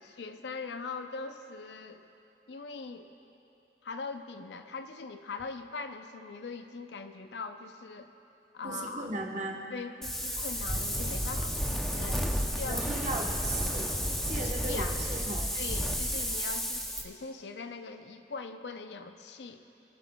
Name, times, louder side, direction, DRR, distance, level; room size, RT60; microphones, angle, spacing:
voice 1, 0.0-2.0 2.5-3.1 3.8-8.1 8.5-9.1 9.7-12.3 12.6-13.0 14.4-15.0 15.5-19.6, left 4 dB, 75° left, 8 dB, 0.6 m, -41 dB
voice 2, 8.6-9.6 12.1-13.9 14.3-15.5, right 2 dB, 45° right, 0 dB, 1.2 m, -37 dB
Wind, 10.0-17.0, equal, ahead, 0.6 m, -32 dB
23.5 x 11.0 x 2.3 m, 2.9 s
head